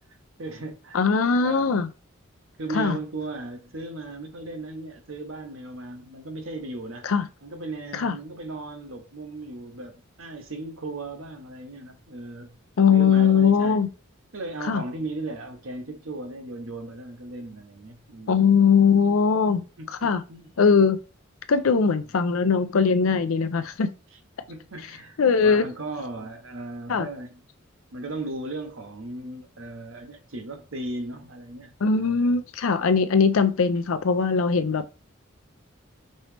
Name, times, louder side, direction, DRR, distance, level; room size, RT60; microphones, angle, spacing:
voice 1, 0.4-1.0 1.4-1.7 2.6-7.1 7.4-12.5 12.9-13.8 14.3-18.4 19.8-20.5 24.5-27.4 27.9-32.4, right 2 dB, 75° right, 1.0 m, -36 dB
voice 2, 0.9-1.9 2.7-3.0 7.0-7.3 7.9-8.1 12.8-13.9 14.7-14.8 18.3-19.6 20.0-20.2 20.6-21.0 21.5-23.9 25.2-25.7 26.9-27.1 31.8-34.9, left 5 dB, 85° left, 0.5 m, -20 dB
5.3 x 3.0 x 3.3 m
head